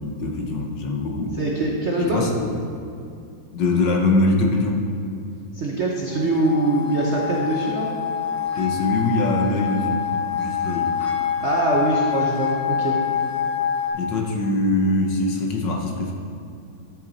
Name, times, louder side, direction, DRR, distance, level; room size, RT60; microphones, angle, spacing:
voice 1, 0.0-1.4 2.0-2.5 3.5-4.8 8.6-10.9 13.9-16.1, left 2 dB, 65° left, 1 dB, 1.5 m, -23 dB
voice 2, 1.4-2.3 5.5-7.9 11.4-13.0, right 2 dB, 60° right, -2 dB, 0.7 m, -23 dB
sound 1, 6.1-13.9, left 8 dB, 40° left, 1.6 m, -26 dB
12.0 x 6.2 x 4.0 m, 2.5 s
omnidirectional pair, 2.3 m